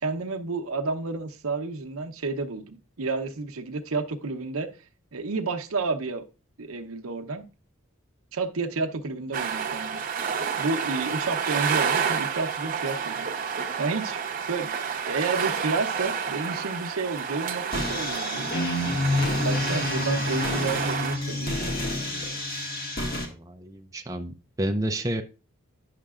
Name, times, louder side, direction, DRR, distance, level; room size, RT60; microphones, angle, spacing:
voice 1, 0.0-4.7 5.1-6.3 6.6-7.4 8.3-10.3 10.6-13.3 13.8-14.2 14.5-14.7 15.1-18.5 19.4-21.7, right 3 dB, 80° right, 0.8 m, -30 dB
sound 1, 9.3-21.2, right 7 dB, 40° right, 0.7 m, -30 dB
sound 2, 17.7-23.3, left 1 dB, 45° left, 1.6 m, -28 dB
voice 2, 23.2-25.2, right 1 dB, 15° right, 0.4 m, -30 dB
9.7 x 6.5 x 2.4 m
head